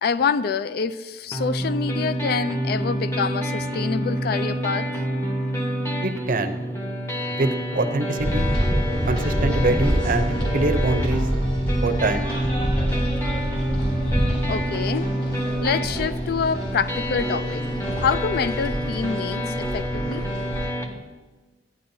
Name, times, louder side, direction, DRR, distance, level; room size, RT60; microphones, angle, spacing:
voice 1, 0.0-5.0 14.5-15.1 15.6-17.6 18.0-20.3, left 6 dB, 60° left, 15 dB, 0.3 m, -26 dB
sound 1, 1.3-20.9, equal, 15° left, 1.0 m, -28 dB
voice 2, 6.0-6.5 7.3-8.5 9.1-11.3 11.8-12.3, right 2 dB, 50° right, 8 dB, 0.6 m, -25 dB
sound 2, 8.2-20.7, equal, 35° left, 3.4 m, -27 dB
13.0 x 9.4 x 2.7 m, 1.3 s
head